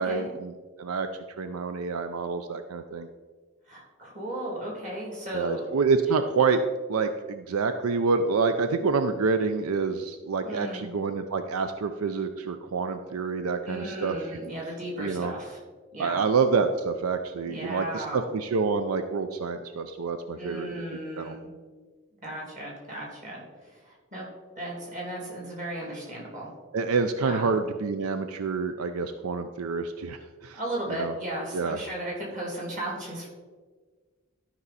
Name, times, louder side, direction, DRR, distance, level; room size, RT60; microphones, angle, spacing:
voice 1, 0.0-3.1 5.3-6.6 6.9-14.2 15.0-15.3 16.0-20.8 21.2-21.3 26.7-30.6 31.0-31.1 31.5-31.8, right 4 dB, 85° right, 8 dB, 0.5 m, -27 dB
voice 2, 3.7-5.6 10.4-10.9 13.6-15.6 15.9-16.2 17.4-18.2 20.4-21.5 22.2-24.3 24.5-26.5 27.2-27.5 30.5-33.3, right 1 dB, 35° right, -2 dB, 2.6 m, -35 dB
12.5 x 5.5 x 4.1 m, 1.4 s
head